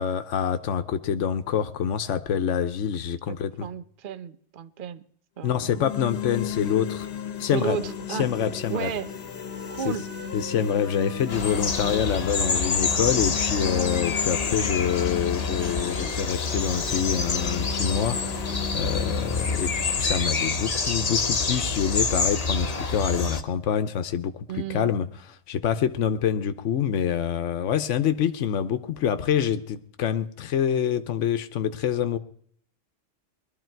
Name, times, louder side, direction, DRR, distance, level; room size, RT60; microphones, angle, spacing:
voice 1, 0.0-3.7 5.4-7.1 7.4-7.8 8.1-8.9 9.8-9.9 10.3-32.2, left 8 dB, 80° left, 1.1 m, -26 dB
voice 2, 3.6-5.0 5.4-5.8 7.5-8.3 8.7-9.1 9.7-10.0 24.5-24.9, right 8 dB, 50° right, 0.8 m, -33 dB
sound 1, 5.5-21.5, left 7 dB, 60° left, 1.1 m, -36 dB
Wind instrument woodwind instrument, 9.3-12.9 13.1-17.0, left 2 dB, 10° left, 1.5 m, -42 dB
sound 2, 11.3-23.4, left 4 dB, 35° left, 0.9 m, -27 dB
21.0 x 12.5 x 4.6 m
omnidirectional pair, 1.3 m